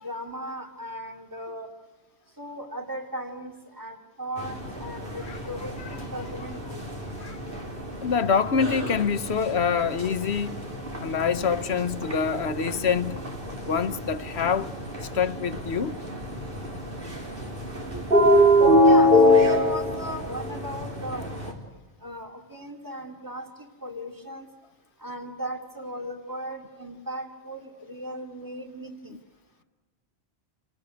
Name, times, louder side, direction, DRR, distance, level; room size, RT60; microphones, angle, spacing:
voice 1, 0.0-1.7 2.4-6.8 17.7-18.0 18.8-21.5 22.0-24.5 25.0-29.2, right 1 dB, 20° right, 2.7 m, -37 dB
sound 1, 4.4-21.5, left 1 dB, 60° right, 4.0 m, -25 dB
voice 2, 8.0-10.6 11.0-13.3 13.7-14.7 15.0-16.0, left 6 dB, 90° left, 1.3 m, -26 dB
28.5 x 18.5 x 9.4 m
omnidirectional pair, 1.1 m